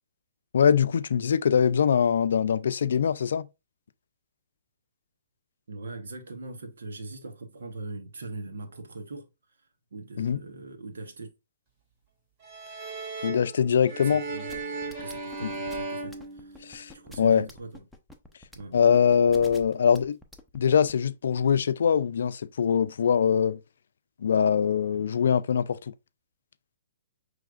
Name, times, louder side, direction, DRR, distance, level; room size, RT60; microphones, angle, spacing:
voice 1, 0.5-3.5 10.2-10.4 13.2-14.2 15.4-15.5 16.6-17.5 18.7-20.2 20.5-23.6 24.2-25.8, left 7 dB, 75° left, 0.4 m, -23 dB
voice 2, 5.7-9.3 9.9-11.3 14.0-16.6 16.9-17.8 18.5-18.8, right 2 dB, 80° right, 1.1 m, -41 dB
sound 1, 12.4-17.0, right 3 dB, 35° right, 2.3 m, -36 dB
sound 2, 14.5-20.9, left 1 dB, ahead, 0.7 m, -47 dB
6.0 x 3.2 x 2.5 m
hypercardioid pair, 135°, 0 cm